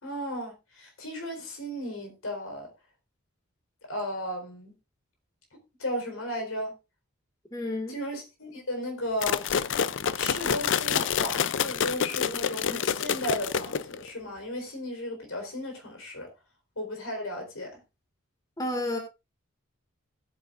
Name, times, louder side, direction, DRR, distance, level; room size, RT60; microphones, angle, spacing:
voice 1, 0.0-2.7 3.9-4.7 5.8-6.7 7.9-9.4 10.1-16.3 16.8-17.7, equal, 70° left, 4.1 m, -35 dB
voice 2, 7.5-8.0 18.6-19.0, left 1 dB, 15° left, 1.9 m, -30 dB
sound 1, 9.2-14.1, left 7 dB, 55° left, 0.4 m, -27 dB
16.5 x 8.7 x 2.5 m
head